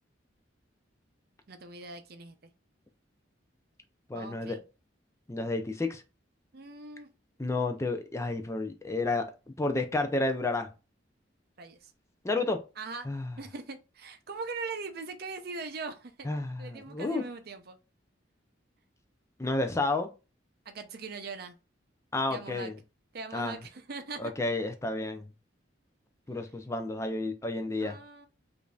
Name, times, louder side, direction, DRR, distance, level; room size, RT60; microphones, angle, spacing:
voice 1, 1.5-2.4 4.1-4.6 6.5-7.1 11.6-11.9 12.8-13.1 13.4-16.3 16.6-17.8 20.7-21.6 22.3-22.7 23.1-24.3 27.8-28.3, right 4 dB, 55° right, 0.5 m, -41 dB
voice 2, 4.1-4.6 5.3-6.0 7.4-9.3 9.6-10.7 12.2-12.6 13.1-13.3 16.2-17.2 19.4-20.1 22.1-22.8 23.3-23.6 24.2-25.2 26.3-28.0, left 2 dB, 15° left, 0.4 m, -31 dB
5.0 x 2.6 x 2.3 m
head